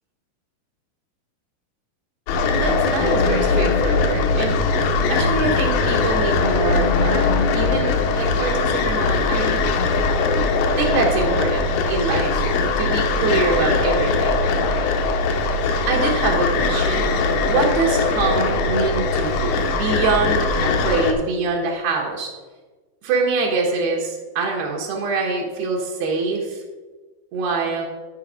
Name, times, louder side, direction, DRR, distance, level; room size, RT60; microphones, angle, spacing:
sound 1, 2.3-21.1, left 3 dB, 75° left, 2.4 m, -20 dB
voice 1, 2.4-4.6 5.1-9.6 10.8-12.4 12.8-14.9 15.9-17.0 17.5-22.3 23.0-26.6 27.3-27.9, right 4 dB, 80° right, -1 dB, 3.2 m, -24 dB
12.0 x 5.2 x 5.0 m, 1.3 s
omnidirectional pair, 4.5 m